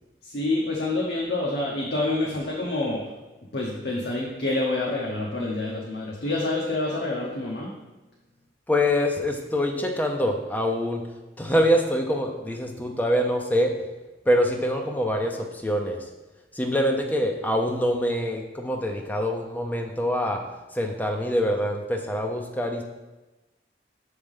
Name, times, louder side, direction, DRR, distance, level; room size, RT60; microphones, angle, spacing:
voice 1, 0.2-3.1 3.5-7.7, left 2 dB, 55° left, -3 dB, 0.8 m, -27 dB
voice 2, 8.7-11.0 11.4-13.7 14.3-16.1 16.5-20.4 20.7-22.8, equal, 10° left, 2 dB, 0.5 m, -25 dB
6.3 x 3.4 x 5.3 m, 1.1 s
head